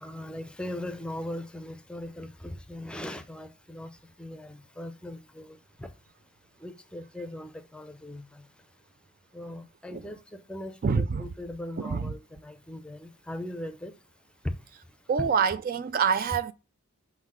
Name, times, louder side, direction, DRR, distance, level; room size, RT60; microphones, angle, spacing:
voice 1, 0.0-3.9 4.2-5.9 6.6-8.2 9.3-10.2 10.5-13.9 14.4-14.5, left 1 dB, 5° left, 0.6 m, -39 dB
voice 2, 10.8-11.3 11.8-12.1 15.1-16.5, right 6 dB, 40° right, 0.3 m, -26 dB
6.1 x 3.9 x 6.3 m
head